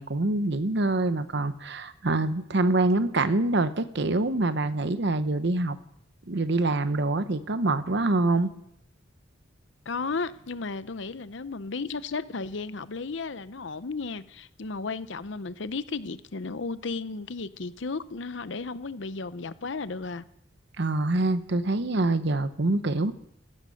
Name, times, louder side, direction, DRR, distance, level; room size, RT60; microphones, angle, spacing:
voice 1, 0.0-5.8 6.3-8.5 20.8-23.1, right 2 dB, 60° right, 0.9 m, -25 dB
voice 2, 9.9-20.2, left 4 dB, 65° left, 0.7 m, -34 dB
16.0 x 13.5 x 6.5 m
head